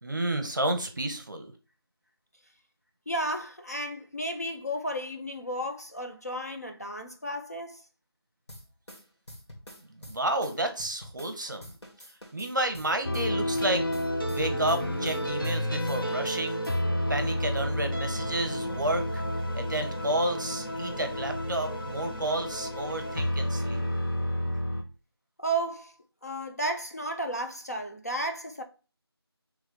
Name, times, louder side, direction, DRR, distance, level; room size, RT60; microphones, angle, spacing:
voice 1, 0.0-1.5 9.9-11.8 12.3-13.9 14.3-16.7 17.1-19.2 19.5-23.8, right 1 dB, 45° right, 0.7 m, -31 dB
voice 2, 3.1-7.8 25.4-25.9 26.2-28.6, right 1 dB, 40° left, 0.4 m, -33 dB
sound 1, 8.5-11.4 11.6-15.6 15.9-16.8, equal, 85° left, 2.1 m, -47 dB
sound 2, 13.0-24.8, left 1 dB, 55° left, 0.8 m, -30 dB
3.4 x 3.1 x 3.8 m
figure-of-eight pair, 175°, 14 cm